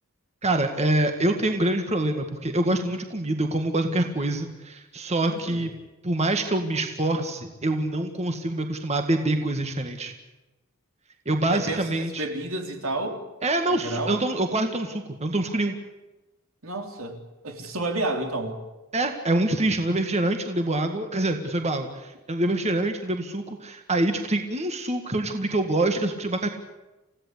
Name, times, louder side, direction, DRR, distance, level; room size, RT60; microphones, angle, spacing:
voice 1, 0.4-5.7 6.0-10.1 11.3-12.2 13.4-15.7 18.9-26.5, right 1 dB, 30° right, 5 dB, 1.8 m, -25 dB
voice 2, 5.3-5.7 11.5-13.2 13.7-14.2 16.6-18.6, right 2 dB, 75° right, 5 dB, 3.7 m, -31 dB
29.0 x 16.5 x 8.3 m, 1.1 s
head